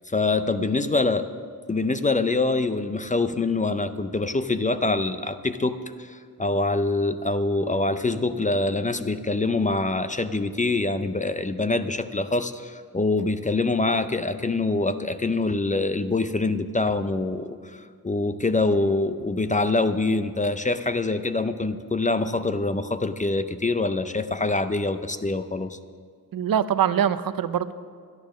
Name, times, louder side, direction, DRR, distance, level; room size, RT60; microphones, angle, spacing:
voice 1, 0.1-1.3 1.7-25.8, left 3 dB, 20° left, 11 dB, 0.4 m, -25 dB
voice 2, 26.3-27.7, right 9 dB, 75° right, 14 dB, 0.6 m, -23 dB
12.5 x 10.5 x 6.2 m, 2.1 s
wide cardioid pair, 105°, 35 cm